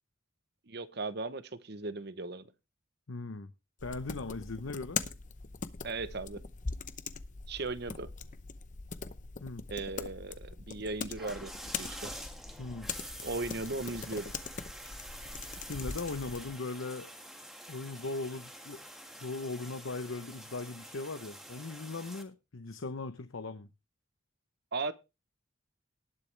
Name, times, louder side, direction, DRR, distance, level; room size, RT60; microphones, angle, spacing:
voice 1, 0.7-2.5 5.8-6.4 7.5-8.1 9.7-12.2 13.2-14.3 24.7-24.9, right 3 dB, 55° right, 0.9 m, -37 dB
voice 2, 3.1-3.5 3.8-5.0 9.4-9.6 12.6-12.9 15.7-17.1 17.7-18.8 19.1-23.7, left 3 dB, 90° left, 0.8 m, -39 dB
sound 1, 3.8-16.5, left 5 dB, 40° left, 0.8 m, -42 dB
sound 2, 11.1-22.2, equal, ahead, 1.6 m, -47 dB
19.0 x 7.0 x 3.3 m
head